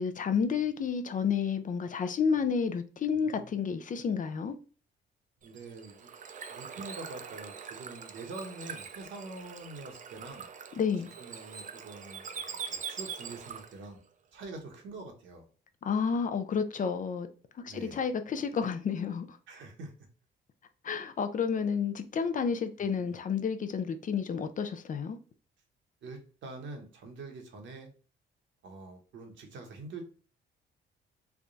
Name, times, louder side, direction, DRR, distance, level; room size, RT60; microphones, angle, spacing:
voice 1, 0.0-4.5 10.8-11.1 15.8-17.3 17.6-19.4 20.8-25.2, left 6 dB, 40° left, 0.5 m, -30 dB
voice 2, 3.1-3.5 5.4-6.1 6.5-10.5 11.2-14.0 14.3-15.4 17.7-18.0 19.5-19.9 22.8-23.2 26.0-27.9 28.6-30.0, right 3 dB, 75° right, 1.1 m, -45 dB
Bird / Water, 5.4-13.9, right 6 dB, 40° right, 0.5 m, -43 dB
3.5 x 2.2 x 3.9 m
cardioid pair, 90°, 20 cm